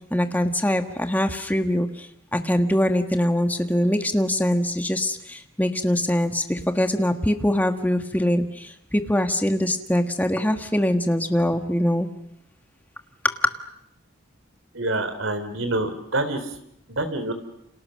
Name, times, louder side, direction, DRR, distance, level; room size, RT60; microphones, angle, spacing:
voice 1, 0.1-12.1 13.2-13.5, left 1 dB, 10° left, 6 dB, 1.5 m, -23 dB
voice 2, 14.7-16.4 16.9-17.3, right 2 dB, 80° right, 9 dB, 3.6 m, -26 dB
29.5 x 27.0 x 6.5 m, 0.79 s
head